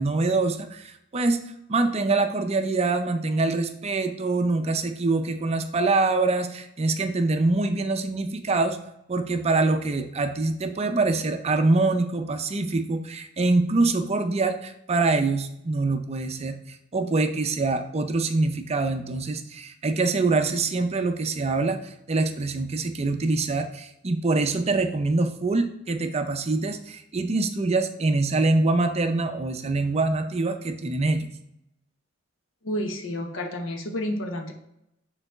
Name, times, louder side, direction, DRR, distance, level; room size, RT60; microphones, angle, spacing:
voice 1, 0.0-1.4 1.7-8.8 9.1-31.3, right 3 dB, 30° right, 7 dB, 0.5 m, -24 dB
voice 2, 32.6-34.5, left 1 dB, 70° left, 4 dB, 1.0 m, -30 dB
6.7 x 3.9 x 4.5 m, 0.80 s
head